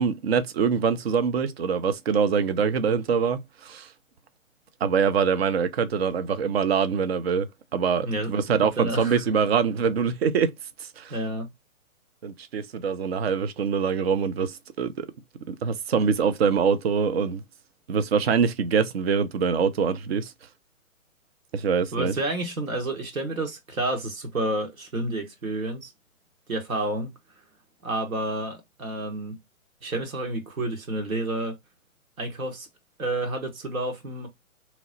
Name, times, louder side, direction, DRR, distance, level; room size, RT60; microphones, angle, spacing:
voice 1, 0.0-3.9 4.8-10.5 10.8-11.1 12.2-15.1 15.5-17.4 17.9-20.3 21.5-22.1, right 6 dB, 50° right, 0.5 m, -24 dB
voice 2, 8.0-9.2 11.1-11.5 21.9-25.9 26.5-27.1 27.8-29.4 29.8-31.6 32.2-32.7 33.0-34.3, right 2 dB, 75° right, 1.3 m, -30 dB
3.0 x 2.0 x 3.7 m
figure-of-eight pair, 135°, 42 cm